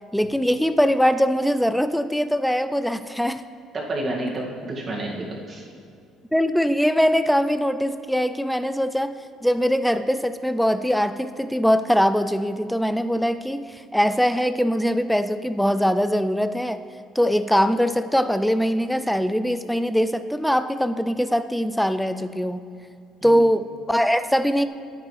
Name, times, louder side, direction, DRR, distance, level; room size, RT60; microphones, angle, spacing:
voice 1, 0.1-3.4 6.3-16.8 17.2-22.6 23.2-24.7, equal, ahead, 12 dB, 0.4 m, -22 dB
voice 2, 3.7-5.6 23.2-23.4, right 2 dB, 40° right, -3 dB, 2.0 m, -30 dB
9.6 x 9.1 x 3.3 m, 2.4 s
cardioid pair, 95°, 0 cm